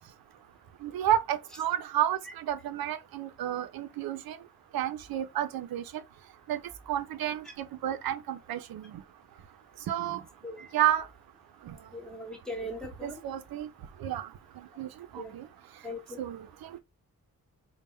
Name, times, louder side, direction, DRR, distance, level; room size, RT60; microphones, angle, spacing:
voice 1, 0.8-4.4 4.7-5.8 6.5-6.6 6.9-8.9 9.9-10.2 10.7-11.1 11.7-11.8 13.0-13.7 14.0-14.3 14.8-14.9 15.1-15.5 16.2-16.8, right 12 dB, 90° right, 0.6 m, -31 dB
voice 2, 11.9-13.2 15.2-15.3 15.8-16.2, left 1 dB, ahead, 1.7 m, -39 dB
3.5 x 2.2 x 4.2 m
cardioid pair, 60°, 35 cm